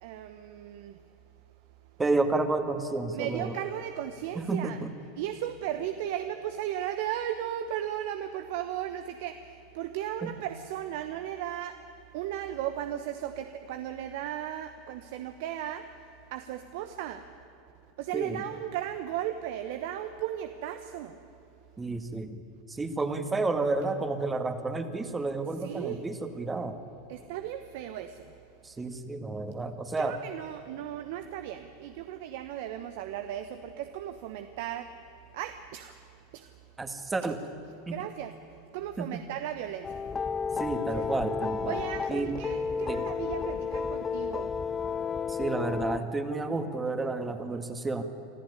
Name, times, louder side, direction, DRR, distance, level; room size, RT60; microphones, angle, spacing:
voice 1, 0.0-1.0 3.1-4.8 5.2-11.8 12.1-15.8 16.3-17.2 18.0-21.2 25.6-26.0 27.1-28.3 30.0-34.9 35.3-35.9 36.3-36.5 37.9-38.3 38.7-40.0 40.9-41.0 41.6-44.5, right 11 dB, 65° right, 9 dB, 1.0 m, -36 dB
voice 2, 2.0-3.6 4.3-4.9 10.2-10.3 18.1-18.4 21.8-22.4 22.7-26.8 28.6-30.2 36.8-37.4 37.9-38.1 39.0-39.2 40.6-41.8 42.1-42.4 42.8-43.1 45.3-48.0, right 3 dB, 15° right, 7 dB, 2.0 m, -31 dB
sound 1, 39.8-46.0, left 6 dB, 20° left, 0.5 m, -32 dB
25.5 x 14.5 x 9.9 m, 2.9 s
hypercardioid pair, 95°, 0 cm